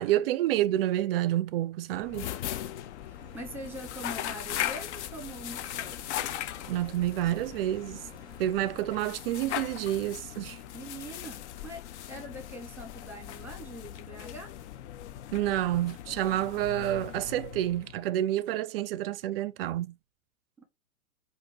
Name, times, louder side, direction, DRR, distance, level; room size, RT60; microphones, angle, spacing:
voice 1, 0.0-2.3 6.7-8.0 8.4-10.6 15.3-19.9, right 13 dB, 45° right, 0.4 m, -29 dB
sound 1, 2.0-18.1, left 11 dB, 55° left, 0.5 m, -39 dB
sound 2, 3.1-8.8, equal, 10° left, 1.5 m, -54 dB
voice 2, 3.1-5.9 10.7-14.5 20.6-20.7, equal, 5° right, 1.1 m, -43 dB
5.0 x 2.6 x 2.7 m
hypercardioid pair, 115°, 41 cm